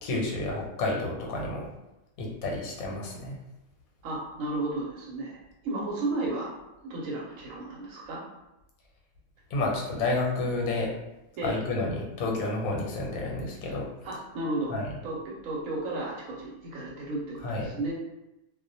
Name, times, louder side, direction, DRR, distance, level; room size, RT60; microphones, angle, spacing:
voice 1, 0.0-1.7 2.2-3.4 9.5-10.9 11.4-13.9 14.7-14.9 17.4-17.7, left 2 dB, 90° left, -2 dB, 1.1 m, -30 dB
voice 2, 4.0-6.5 6.8-8.2 11.4-11.6 14.0-14.7 15.0-17.9, right 2 dB, 75° right, -3 dB, 0.9 m, -33 dB
2.3 x 2.1 x 2.6 m, 0.92 s
omnidirectional pair, 1.5 m